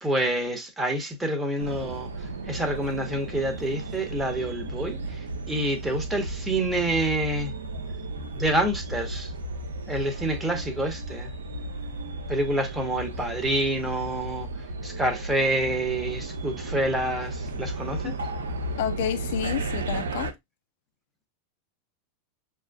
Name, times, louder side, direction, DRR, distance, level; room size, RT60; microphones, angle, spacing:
voice 1, 0.0-7.5 8.4-9.3 9.9-11.3 12.3-14.5 14.8-18.1, right 1 dB, 10° right, 1.0 m, -27 dB
sound 1, 1.6-20.3, right 2 dB, 75° right, 0.5 m, -34 dB
voice 2, 18.8-20.3, left 11 dB, 60° left, 0.4 m, -30 dB
5.9 x 2.5 x 2.2 m
figure-of-eight pair, 90°, 0 cm